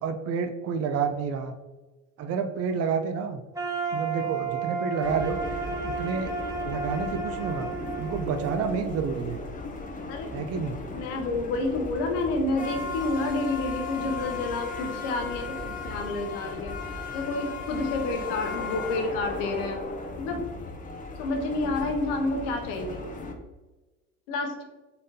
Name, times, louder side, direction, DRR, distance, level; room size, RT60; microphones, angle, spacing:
voice 1, 0.0-1.5 2.2-3.4 3.9-5.4 5.8-6.3 6.6-7.7 8.0-9.4 10.3-10.8, right 6 dB, 40° right, 6 dB, 0.5 m, -29 dB
sound 1, 3.5-9.5, right 4 dB, 10° right, 1.0 m, -33 dB
sound 2, 5.0-23.3, left 3 dB, 20° left, 0.6 m, -36 dB
voice 2, 10.9-16.8 17.1-19.8 20.2-20.4 21.2-23.0 24.3-24.6, left 2 dB, 70° left, 3 dB, 0.9 m, -29 dB
3.9 x 3.6 x 2.7 m, 1.2 s
hypercardioid pair, 75°, 40 cm